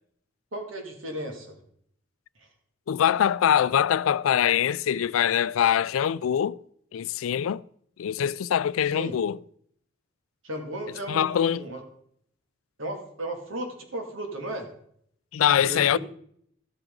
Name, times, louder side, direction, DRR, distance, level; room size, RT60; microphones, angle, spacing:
voice 1, 0.5-1.6 2.4-2.5 8.9-9.1 10.4-11.8 12.8-14.7 15.7-16.0, right 1 dB, 75° right, 2.4 m, -35 dB
voice 2, 2.9-6.6 6.9-7.6 8.0-9.4 11.1-11.7 15.3-16.0, left 9 dB, 90° left, 0.3 m, -23 dB
13.0 x 8.7 x 3.8 m
head